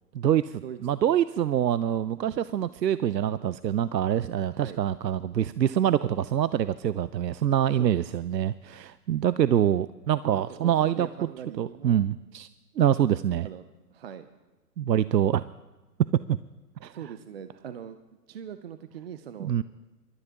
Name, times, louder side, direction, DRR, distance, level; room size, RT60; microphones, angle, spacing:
voice 1, 0.1-11.3 11.6-12.5 12.8-13.5 14.8-15.4 16.3-16.4 16.8-16.9 19.4-19.6, right 10 dB, 80° right, 16 dB, 0.6 m, -25 dB
voice 2, 10.5-12.0 13.4-13.6 13.9-14.3 16.9-18.0 18.3-19.5, right 8 dB, 40° right, 10 dB, 0.6 m, -41 dB
24.0 x 12.5 x 2.9 m, 1.2 s
figure-of-eight pair, 130°, 49 cm